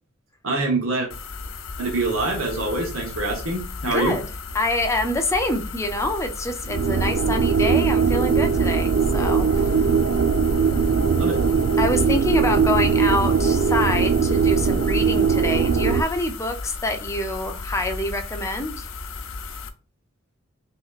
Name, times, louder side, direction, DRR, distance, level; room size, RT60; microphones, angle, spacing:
voice 1, 0.4-1.1 1.8-4.2 11.2-11.4, right 2 dB, 85° right, 1.1 m, -25 dB
sound 1, 1.1-19.7, left 4 dB, 85° left, 0.6 m, -35 dB
voice 2, 3.8-4.2 4.5-9.7 10.7-11.0 11.8-18.9, left 1 dB, 15° left, 0.6 m, -26 dB
sound 2, 6.7-16.0, right 5 dB, 65° right, 0.4 m, -20 dB
5.4 x 3.0 x 2.4 m
head